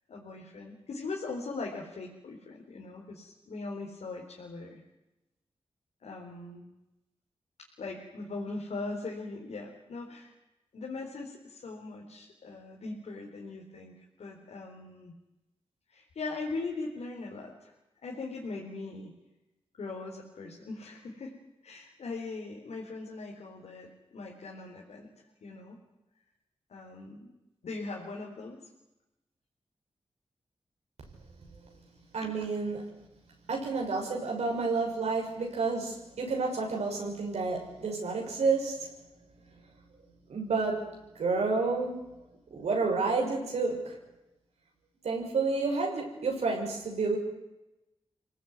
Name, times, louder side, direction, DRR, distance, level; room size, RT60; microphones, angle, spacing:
voice 1, 0.1-4.8 6.0-6.7 7.8-10.3 10.7-15.1 15.9-17.7 18.0-19.1 19.8-21.4 21.6-25.1 25.4-25.8 26.7-27.3 27.6-28.7 32.2-32.3, left 3 dB, 80° left, -1 dB, 4.2 m, -40 dB
voice 2, 32.1-32.9 33.5-38.9 40.3-42.1 42.5-44.0 45.0-47.2, right 4 dB, 85° right, 1 dB, 6.3 m, -30 dB
25.5 x 18.5 x 9.7 m, 0.97 s
cardioid pair, 40°, 11 cm